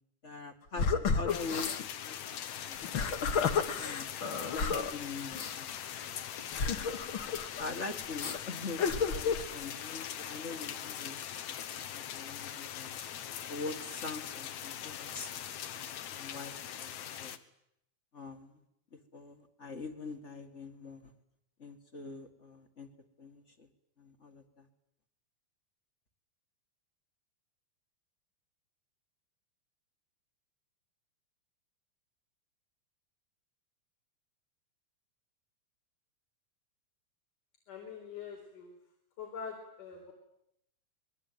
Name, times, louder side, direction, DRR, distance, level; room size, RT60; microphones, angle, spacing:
voice 1, 0.2-2.4 2.6-4.1 4.5-5.7 6.7-6.9 7.6-11.2 11.5-11.6 11.9-12.9 13.5-15.5 16.1-16.5 16.8-17.3 18.1-18.6 18.9-21.1 21.6-22.9 23.2-23.7 24.0-24.7, left 3 dB, 30° left, 6 dB, 1.6 m, -44 dB
sound 1, 0.8-1.8 2.7-4.9 5.3-5.5 6.5-7.7 8.2-8.4 8.8-9.4, left 5 dB, 45° left, 2.0 m, -31 dB
sound 2, 1.3-17.4, left 10 dB, 70° left, 2.4 m, -41 dB
voice 2, 37.7-38.7 39.2-40.1, left 6 dB, 85° left, 0 dB, 6.1 m, -44 dB
27.0 x 21.0 x 9.3 m, 0.79 s
omnidirectional pair, 3.5 m